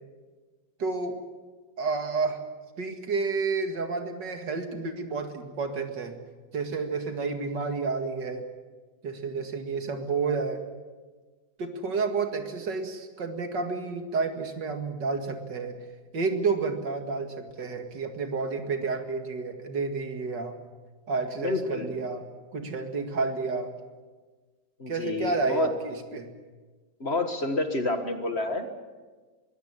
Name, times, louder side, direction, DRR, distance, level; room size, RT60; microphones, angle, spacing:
voice 1, 0.8-1.2 1.8-2.4 2.8-6.2 6.5-8.5 9.0-10.6 11.6-15.8 16.1-20.6 21.1-22.3 22.5-23.7 24.9-26.3, right 4 dB, 70° right, 6 dB, 2.6 m, -30 dB
voice 2, 21.4-21.9 24.8-25.7 27.0-28.7, left 2 dB, 35° left, 7 dB, 1.7 m, -29 dB
23.0 x 16.5 x 9.8 m, 1.4 s
omnidirectional pair, 2.0 m